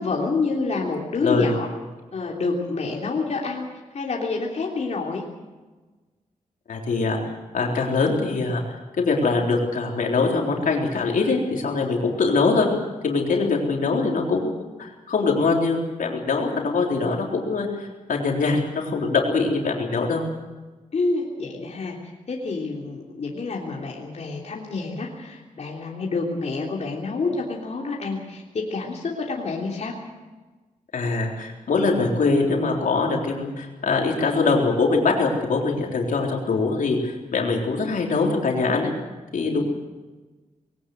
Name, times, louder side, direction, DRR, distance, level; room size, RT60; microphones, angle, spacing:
voice 1, 0.0-1.7 2.1-3.7 3.9-5.2 13.3-13.5 20.9-22.0 22.3-29.9 34.0-34.1, left 3 dB, 55° left, -2 dB, 3.3 m, -28 dB
voice 2, 1.2-1.6 6.7-7.2 7.5-8.6 9.0-12.7 13.0-14.5 14.8-20.2 30.9-38.9 39.3-39.7, left 3 dB, 80° left, 0 dB, 3.9 m, -23 dB
21.0 x 17.5 x 8.0 m, 1.2 s
wide cardioid pair, 110°, 14 cm